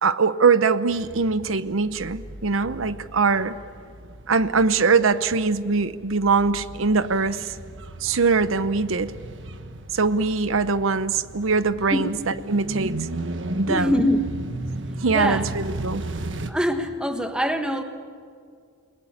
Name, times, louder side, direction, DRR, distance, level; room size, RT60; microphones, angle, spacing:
voice 1, 0.0-3.6 4.3-7.6 8.0-9.1 9.9-13.1 13.6-13.9 15.0-16.0, right 4 dB, 75° right, 13 dB, 0.8 m, -22 dB
sound 1, 0.9-16.5, right 2 dB, 60° right, 1.4 m, -35 dB
voice 2, 13.7-14.3 15.1-15.5 16.5-17.8, equal, 5° right, 6 dB, 1.5 m, -23 dB
29.0 x 20.5 x 8.7 m, 2.2 s
head